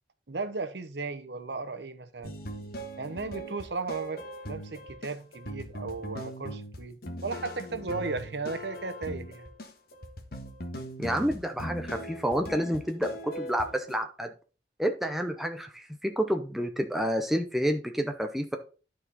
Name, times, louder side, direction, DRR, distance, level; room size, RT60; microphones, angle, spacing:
voice 1, 0.3-2.4 3.0-9.5, right 3 dB, 70° right, 0.9 m, -36 dB
sound 1, 2.2-14.0, equal, 55° left, 1.3 m, -40 dB
voice 2, 11.0-14.3 14.8-18.6, equal, ahead, 0.6 m, -29 dB
11.5 x 4.6 x 4.1 m
head